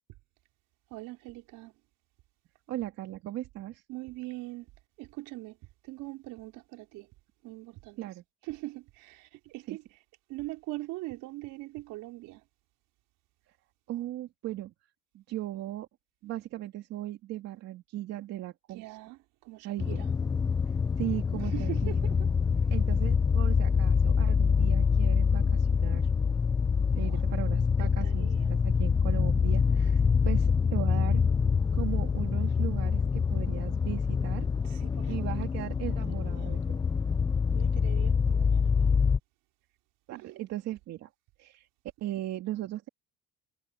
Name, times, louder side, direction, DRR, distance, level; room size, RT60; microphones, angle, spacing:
voice 1, 0.9-1.7 3.9-4.7 5.0-5.6 5.8-7.1 7.4-8.1 8.4-9.8 10.3-12.4 18.7-20.1 21.3-22.2 27.0-28.5 34.6-35.5 35.9-36.6 37.5-38.9 40.1-40.4, right 20 dB, 75° right, 5.2 m, -42 dB
voice 2, 2.7-3.8 8.0-8.2 9.7-9.8 13.9-14.7 15.1-15.9 16.2-18.8 19.6-20.0 21.0-22.0 22.7-26.1 26.9-31.2 31.7-34.5 35.1-36.8 40.1-41.1 41.4-41.7 42.0-42.9, right 14 dB, 50° right, 2.6 m, -37 dB
sound 1, 19.8-39.2, left 6 dB, 15° left, 0.4 m, -26 dB
cardioid pair, 160°, 32 cm